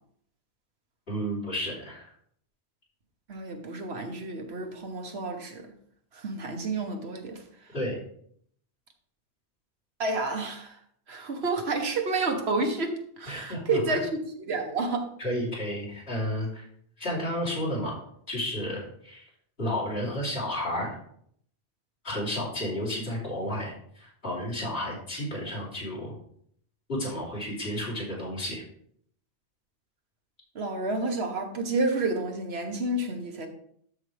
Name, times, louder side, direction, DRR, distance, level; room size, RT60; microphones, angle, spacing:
voice 1, 1.1-2.1 7.7-8.0 13.3-14.0 15.2-16.6 17.0-18.0 18.3-19.2 19.6-21.0 22.0-26.1 26.9-28.6, equal, 65° left, 3.5 m, -32 dB
voice 2, 3.3-5.7 6.1-7.4 10.0-10.8 11.1-15.1 30.5-33.5, right 3 dB, 70° right, 1.4 m, -30 dB
12.5 x 4.9 x 3.3 m
omnidirectional pair, 1.1 m